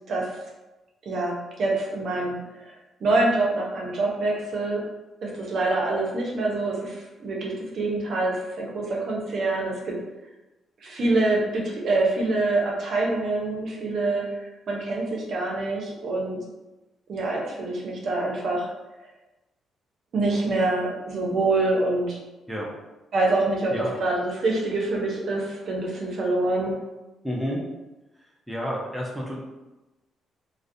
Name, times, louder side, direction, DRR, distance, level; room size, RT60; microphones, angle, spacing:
voice 1, 0.1-0.4 1.0-2.4 2.7-4.8 5.2-10.0 10.8-16.4 17.1-18.7 20.1-22.2 23.1-26.7, right 2 dB, 60° right, -2 dB, 0.6 m, -26 dB
voice 2, 27.2-27.6 28.5-29.4, equal, ahead, -3 dB, 0.5 m, -30 dB
2.3 x 2.1 x 2.6 m, 1.1 s
cardioid pair, 90°, 0 cm